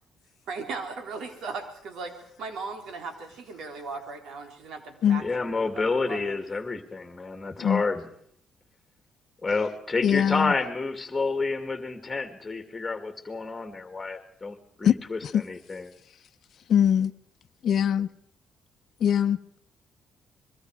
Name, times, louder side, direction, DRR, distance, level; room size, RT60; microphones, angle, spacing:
voice 1, 0.5-2.1 2.4-6.4, right 4 dB, 80° right, 3.7 m, -38 dB
voice 2, 5.2-8.1 9.4-15.9, left 3 dB, 20° left, 2.5 m, -29 dB
voice 3, 10.0-10.5 14.8-14.9 15.2-15.4 16.7-17.1 17.6-18.1 19.0-19.4, left 9 dB, 60° left, 0.8 m, -22 dB
25.0 x 22.5 x 4.9 m
cardioid pair, 90°, 0 cm